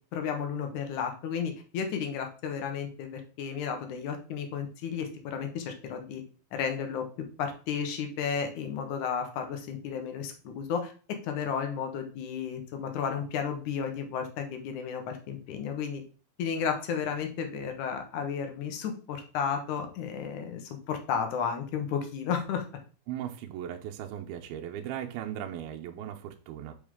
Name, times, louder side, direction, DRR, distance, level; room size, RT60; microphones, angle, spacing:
voice 1, 0.1-6.2 6.5-7.1 7.4-16.0 16.4-22.7, left 7 dB, 65° left, 5 dB, 2.1 m, -33 dB
voice 2, 23.1-26.7, right 10 dB, 85° right, 3 dB, 2.6 m, -37 dB
7.0 x 5.2 x 3.6 m, 0.38 s
omnidirectional pair, 4.4 m